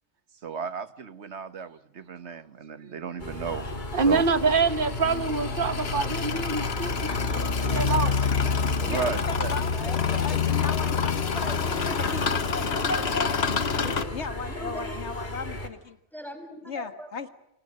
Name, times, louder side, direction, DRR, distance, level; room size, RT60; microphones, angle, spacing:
voice 1, 0.4-4.2 7.9-8.0 8.8-9.5, right 6 dB, 85° right, 1.6 m, -34 dB
sound 1, 3.2-15.7, equal, 45° left, 3.4 m, -35 dB
sound 2, 3.5-14.0, left 6 dB, 65° left, 1.5 m, -28 dB
voice 2, 3.9-8.1, right 4 dB, 50° right, 1.3 m, -26 dB
voice 3, 8.9-11.3 11.9-13.2 14.1-16.0 16.6-17.3, left 5 dB, 90° left, 2.0 m, -37 dB
voice 4, 9.7-10.2 10.8-12.0 13.8-14.0 14.5-15.1 16.1-17.1, equal, ahead, 6.1 m, -40 dB
29.5 x 25.5 x 6.6 m
omnidirectional pair, 1.1 m